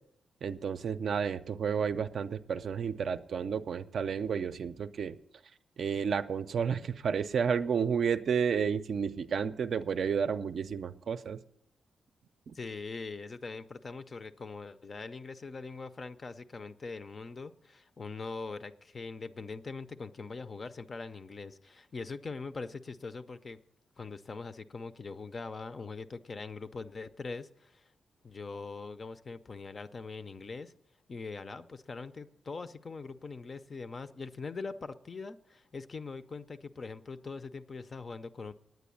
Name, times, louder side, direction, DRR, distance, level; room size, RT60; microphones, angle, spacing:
voice 1, 0.4-5.2 5.8-11.4 12.5-12.6, right 6 dB, 55° right, 11 dB, 0.5 m, -31 dB
voice 2, 12.5-23.6 24.0-27.9 28.2-30.7 31.1-38.5, left 4 dB, 30° left, 12 dB, 0.5 m, -42 dB
9.4 x 9.2 x 8.4 m, 0.75 s
wide cardioid pair, 170°, 0 cm